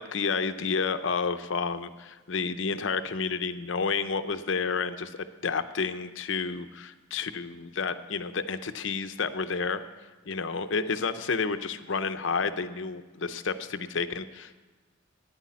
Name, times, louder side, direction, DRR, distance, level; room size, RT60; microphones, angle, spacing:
voice 1, 0.0-9.8 10.2-14.6, left 5 dB, 65° left, 11 dB, 0.7 m, -30 dB
10.5 x 9.9 x 8.5 m, 1.3 s
head